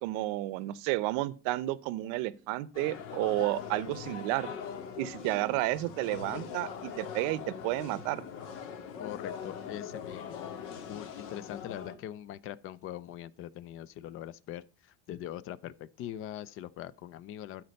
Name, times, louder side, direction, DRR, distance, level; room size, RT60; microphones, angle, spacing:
voice 1, 0.0-4.5 5.0-8.2, right 17 dB, 70° right, 0.7 m, -31 dB
sound 1, 2.7-12.0, left 7 dB, 75° left, 2.0 m, -42 dB
voice 2, 9.0-10.6 10.9-17.6, left 12 dB, 40° left, 0.5 m, -42 dB
12.5 x 4.3 x 5.3 m
cardioid pair, 165°, 33 cm